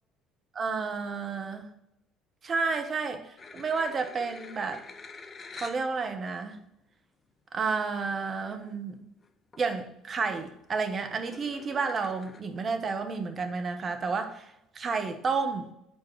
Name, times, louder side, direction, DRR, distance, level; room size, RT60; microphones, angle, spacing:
voice 1, 0.5-1.7 2.4-4.8 5.5-6.6 7.5-9.0 9.6-15.7, right 4 dB, 40° right, 1.1 m, -31 dB
sound 1, 3.4-5.9 6.6-6.7 8.1-8.2 8.4-8.8 9.2-9.7 10.1-12.4, left 4 dB, 35° left, 0.7 m, -47 dB
7.2 x 4.6 x 4.7 m
hypercardioid pair, 60°, 0 cm